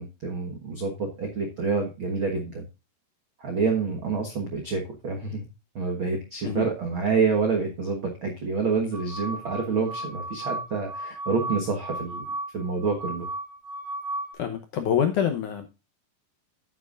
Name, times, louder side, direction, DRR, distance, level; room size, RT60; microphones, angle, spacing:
voice 1, 0.0-2.7 3.4-5.5 5.7-12.2 12.5-13.3, right 4 dB, 80° right, 2 dB, 1.1 m, -27 dB
sound 1, 8.9-14.3, right 1 dB, 60° right, 4.1 m, -35 dB
voice 2, 14.4-15.7, left 8 dB, 75° left, 6 dB, 1.9 m, -26 dB
11.0 x 9.1 x 2.5 m, 0.28 s
omnidirectional pair, 4.7 m